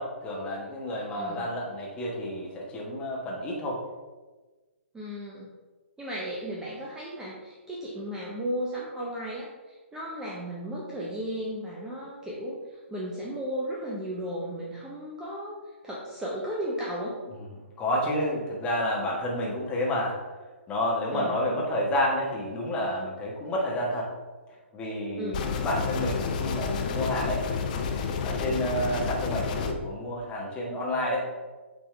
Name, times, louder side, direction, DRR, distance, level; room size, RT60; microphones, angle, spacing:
voice 1, 0.0-3.8 17.3-17.4 17.8-20.3 20.7-24.1 24.7-27.5 28.2-31.3, left 1 dB, 15° left, -3 dB, 1.3 m, -30 dB
voice 2, 1.2-1.5 4.9-5.5 6.0-12.6 12.9-17.2 21.1-21.4 25.2-25.5, equal, 10° right, -4 dB, 0.7 m, -35 dB
sound 1, 25.3-29.7, left 5 dB, 40° left, 0.6 m, -30 dB
8.6 x 3.4 x 3.3 m, 1.3 s
figure-of-eight pair, 125°, 7 cm